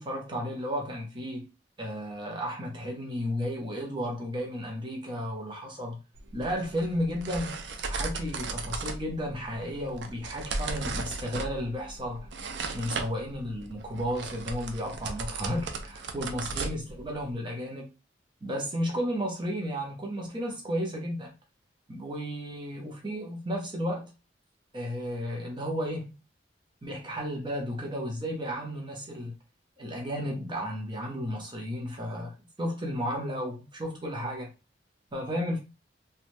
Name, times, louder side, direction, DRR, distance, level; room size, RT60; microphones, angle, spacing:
voice 1, 0.0-1.4 1.8-6.0 6.3-7.6 7.9-12.3 12.7-17.9 18.4-21.3 21.9-24.1 24.7-26.2 26.8-29.3 29.8-34.5 35.1-35.6, equal, 25° right, 0.7 m, -33 dB
sound 1, 6.2-17.3, right 3 dB, 70° right, 0.5 m, -37 dB
3.1 x 2.3 x 2.5 m
head